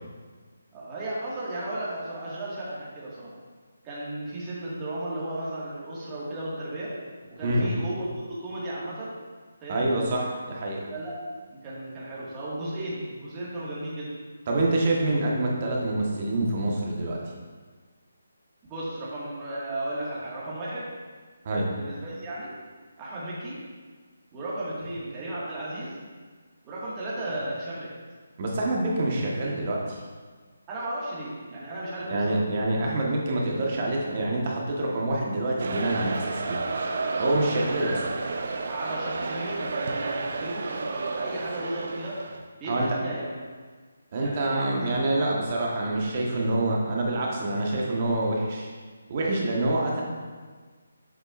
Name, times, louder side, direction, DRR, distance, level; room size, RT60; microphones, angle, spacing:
voice 1, 0.7-3.3 3.8-6.9 7.3-9.1 9.6-9.9 10.9-11.2 11.5-14.1 18.7-20.9 21.7-22.5 23.0-23.6 24.3-25.9 26.6-27.9 30.7-32.4 37.7-37.9 38.7-42.2 42.6-43.4 44.2-45.0, right 1 dB, 20° right, -8 dB, 1.8 m, -34 dB
voice 2, 9.7-10.9 14.5-17.2 21.4-21.7 28.4-30.0 32.1-36.6 37.2-38.0 42.6-42.9 44.1-48.7 49.1-50.0, right 2 dB, 35° right, -2 dB, 1.3 m, -26 dB
sound 1, 35.6-42.4, right 3 dB, 55° right, 0.6 m, -31 dB
7.5 x 6.3 x 2.5 m, 1.5 s
figure-of-eight pair, 160°, 0 cm